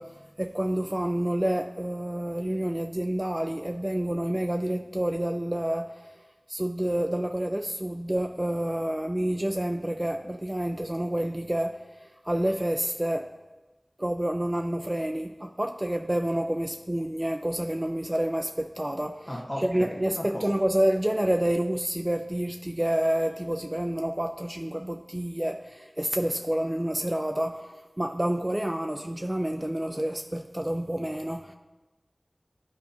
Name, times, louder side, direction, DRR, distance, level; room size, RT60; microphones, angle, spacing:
voice 1, 0.0-6.1 6.5-13.3 14.0-31.5, right 1 dB, 20° right, 0.3 m, -28 dB
voice 2, 19.3-19.9 20.2-20.4, equal, 30° left, 1.7 m, -34 dB
11.0 x 4.6 x 2.9 m
wide cardioid pair, 50°, 0 cm